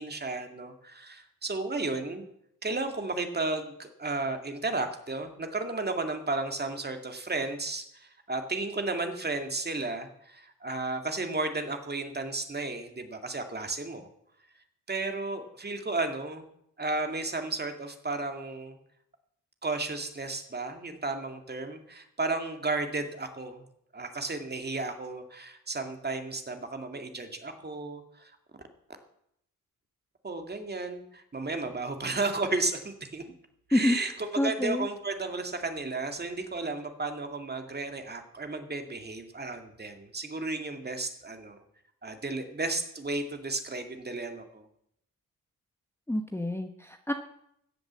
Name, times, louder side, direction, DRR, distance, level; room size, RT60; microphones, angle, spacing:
voice 1, 0.0-2.2 2.6-14.1 14.9-16.5 16.8-18.8 19.6-23.6 23.9-28.3 30.2-33.2 33.7-41.6 42.0-44.7, right 3 dB, 30° right, 5 dB, 2.3 m, -33 dB
voice 2, 34.4-34.9 46.1-47.1, left 1 dB, 5° left, 5 dB, 1.1 m, -27 dB
14.5 x 8.0 x 7.5 m, 0.75 s
cardioid pair, 70°, 33 cm